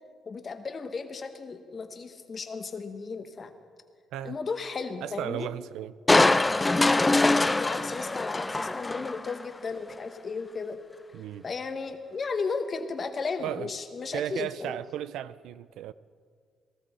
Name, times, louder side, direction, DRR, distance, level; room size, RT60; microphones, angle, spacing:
voice 1, 0.3-3.5 4.2-5.5 6.8-10.8 11.4-14.7, left 4 dB, 40° left, 1.2 m, -35 dB
voice 2, 5.0-5.9 11.1-11.4 13.4-13.7 14.1-15.9, right 11 dB, 90° right, 0.3 m, -35 dB
Crushing, 6.1-9.5 9.9-10.0, left 2 dB, 20° left, 0.3 m, -23 dB
18.0 x 14.0 x 4.3 m
cardioid pair, 90°, 0 cm